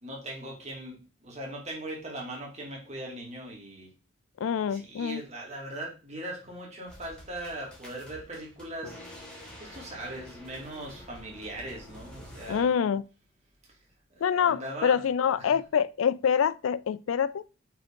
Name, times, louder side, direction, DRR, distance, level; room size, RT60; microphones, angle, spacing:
voice 1, 0.0-1.0 1.2-3.9 4.7-9.0 9.6-12.7 14.2-15.0 15.4-15.5, right 1 dB, 35° right, 2.2 m, -39 dB
voice 2, 4.4-5.2 12.5-13.0 14.2-17.4, left 7 dB, 85° left, 0.4 m, -26 dB
sound 1, 6.9-12.7, equal, 5° left, 1.7 m, -48 dB
5.6 x 5.0 x 3.7 m
head